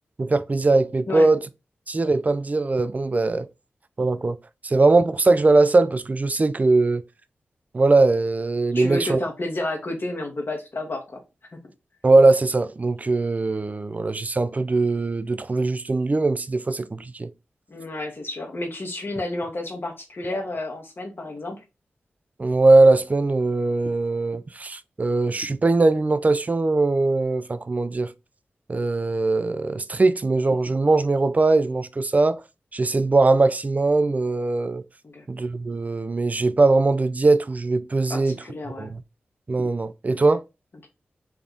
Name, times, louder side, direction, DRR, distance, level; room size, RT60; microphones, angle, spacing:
voice 1, 0.2-1.4 1.9-3.5 4.0-4.4 4.6-7.0 7.7-9.2 12.0-17.3 22.4-28.1 28.7-32.4 32.7-34.8 35.3-38.4 38.8-39.0 39.5-40.4, right 3 dB, 35° right, 0.4 m, -20 dB
voice 2, 8.7-11.2 11.5-11.6 17.7-21.6 35.0-35.2 38.1-38.9, left 2 dB, 55° left, 1.2 m, -31 dB
3.5 x 2.3 x 3.7 m
cardioid pair, 40°, 4 cm